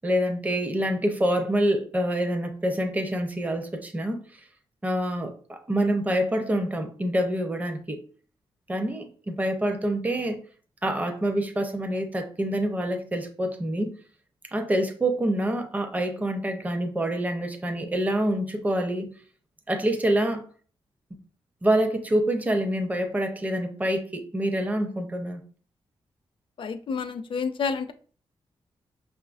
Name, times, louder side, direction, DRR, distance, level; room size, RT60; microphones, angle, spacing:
voice 1, 0.0-4.2 4.8-8.0 8.7-10.4 10.8-13.9 14.5-19.1 19.7-20.5 21.6-25.4, right 1 dB, 15° right, 0.5 m, -26 dB
voice 2, 26.6-27.9, left 5 dB, 55° left, 0.4 m, -29 dB
5.4 x 2.4 x 2.4 m
cardioid pair, 90°, 10 cm